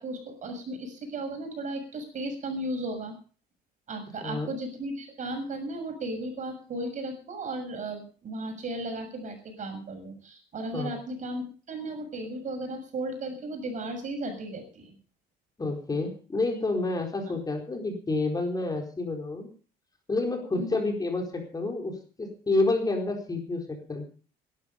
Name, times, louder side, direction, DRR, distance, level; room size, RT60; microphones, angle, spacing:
voice 1, 0.0-3.1 3.9-14.9 17.3-17.4 20.6-20.8, right 1 dB, 45° right, 6 dB, 6.9 m, -35 dB
voice 2, 15.6-19.5 20.1-24.0, left 2 dB, 20° left, 2 dB, 4.4 m, -29 dB
17.5 x 12.0 x 5.3 m, 0.39 s
cardioid pair, 110°, 17 cm